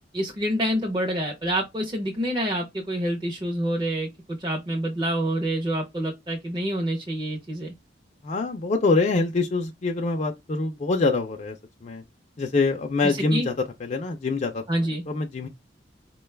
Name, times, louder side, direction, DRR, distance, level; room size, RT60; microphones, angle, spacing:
voice 1, 0.1-7.7 13.0-13.5 14.7-15.0, right 1 dB, 25° right, 0.7 m, -27 dB
voice 2, 8.2-11.5 11.8-12.0 12.4-13.5 13.8-14.6 15.1-15.5, left 3 dB, 40° left, 0.4 m, -25 dB
4.4 x 2.3 x 3.2 m
head